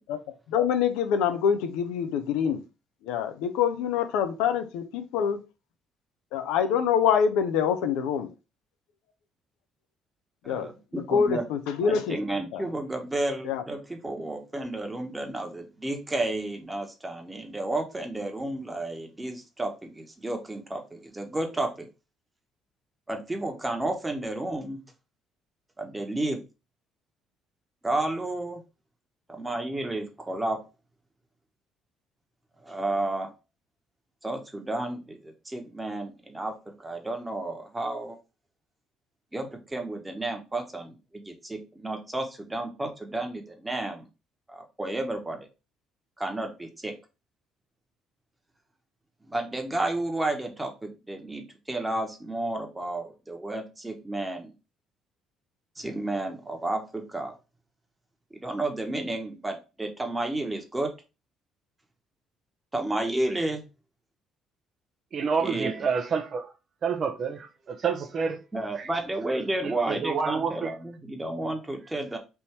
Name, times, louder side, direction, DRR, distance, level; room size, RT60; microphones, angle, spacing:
voice 1, 0.5-2.6 3.0-5.4 6.3-8.3 10.5-10.7 11.1-12.2 12.5-12.6 13.4-13.6, left 7 dB, 80° left, 0.5 m, -25 dB
voice 2, 10.4-11.5 11.8-21.9 23.1-24.8 25.8-26.4 27.8-28.6 29.3-30.6 32.6-33.3 34.2-38.2 39.3-40.9 41.3-44.1 44.5-45.5 46.2-47.0 49.3-54.5 55.8-57.3 58.3-60.9 62.7-63.6 65.4-65.8 68.5-72.2, right 2 dB, 15° right, 1.1 m, -32 dB
voice 3, 65.1-66.5 66.8-68.4 68.7-68.9 69.6-70.7, right 5 dB, 50° right, 0.7 m, -28 dB
3.5 x 2.7 x 4.3 m
hypercardioid pair, 60°, 0 cm